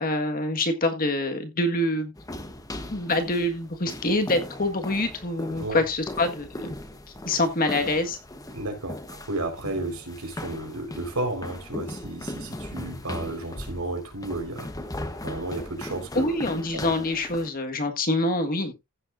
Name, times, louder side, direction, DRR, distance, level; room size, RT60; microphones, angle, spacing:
voice 1, 0.0-2.1 2.8-6.7 7.3-8.2 16.1-18.7, left 2 dB, 40° left, 1.6 m, -25 dB
sound 1, 2.2-17.5, left 1 dB, 15° left, 1.0 m, -38 dB
voice 2, 8.5-14.7 15.2-16.4 16.7-16.8, right 2 dB, 80° right, 4.4 m, -32 dB
15.5 x 7.4 x 2.6 m
head